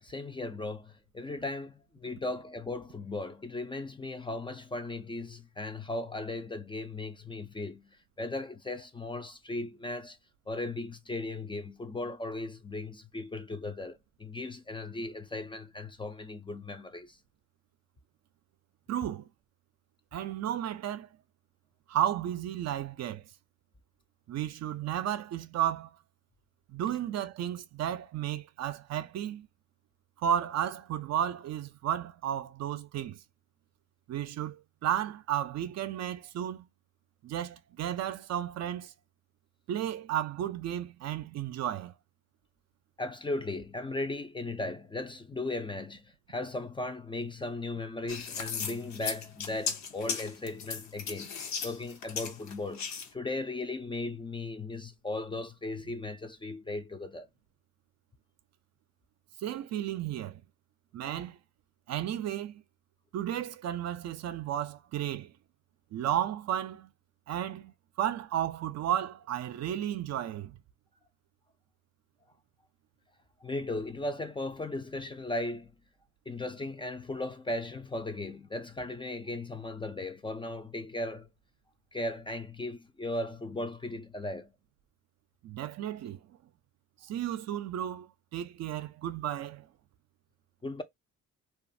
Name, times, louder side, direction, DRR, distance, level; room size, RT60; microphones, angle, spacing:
voice 1, 0.0-10.2 10.5-17.2 43.0-57.3 73.4-75.7 76.3-81.3 81.9-84.5 90.6-90.8, left 2 dB, 15° left, 0.4 m, -37 dB
voice 2, 18.9-19.3 20.1-21.1 21.9-23.2 24.3-25.9 26.7-29.5 30.2-33.2 34.1-36.7 37.2-38.9 39.7-41.9 59.4-60.4 60.9-61.4 61.9-62.6 63.1-65.3 65.9-66.9 67.3-70.6 85.4-86.2 87.0-89.7, right 11 dB, 60° right, 0.5 m, -33 dB
sound 1, 48.1-53.1, left 6 dB, 65° left, 0.8 m, -36 dB
2.4 x 2.4 x 2.6 m
cardioid pair, 90°, 30 cm